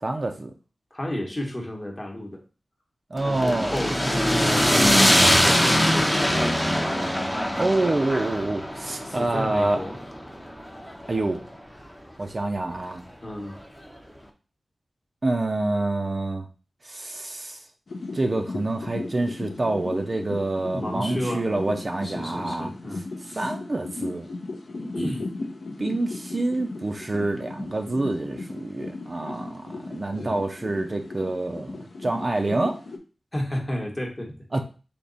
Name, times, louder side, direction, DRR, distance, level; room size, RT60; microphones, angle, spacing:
voice 1, 0.0-0.5 3.1-3.7 7.6-9.8 11.1-11.4 12.2-13.0 15.2-16.5 16.8-17.6 18.1-24.3 25.8-32.8 34.5-34.6, right 2 dB, 35° right, 4 dB, 0.4 m, -27 dB
voice 2, 0.9-2.4 3.2-7.7 9.0-10.0 13.2-13.6 20.7-21.4 22.0-23.5 24.8-25.3 30.1-30.4 33.3-34.4, left 1 dB, 25° left, 1 dB, 0.9 m, -33 dB
sound 1, 3.2-11.4, equal, 5° left, 0.6 m, -22 dB
sound 2, 17.9-33.0, left 3 dB, 65° left, 0.6 m, -37 dB
3.5 x 2.8 x 3.9 m, 0.36 s
wide cardioid pair, 115°, 0 cm